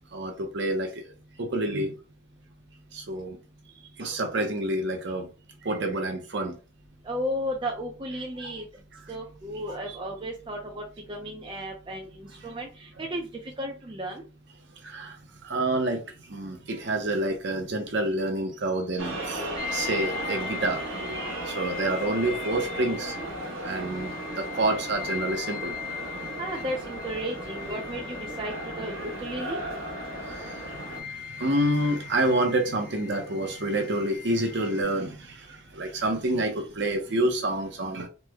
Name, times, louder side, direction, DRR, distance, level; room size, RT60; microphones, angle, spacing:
voice 1, 0.1-0.9 1.4-1.9 2.9-3.4 4.0-5.3 5.6-6.5 8.4-8.5 9.7-10.0 14.8-15.1 15.4-16.0 16.3-19.4 19.7-20.8 21.5-23.1 23.6-25.7 30.4-38.1, right 1 dB, 55° right, 0.7 m, -28 dB
voice 2, 7.0-8.6 9.1-14.2 26.4-29.6, equal, 25° right, 0.5 m, -34 dB
sound 1, 19.0-31.0, right 1 dB, 75° right, 1.1 m, -36 dB
sound 2, 19.6-34.8, left 8 dB, 20° left, 0.7 m, -40 dB
3.1 x 2.1 x 3.4 m
head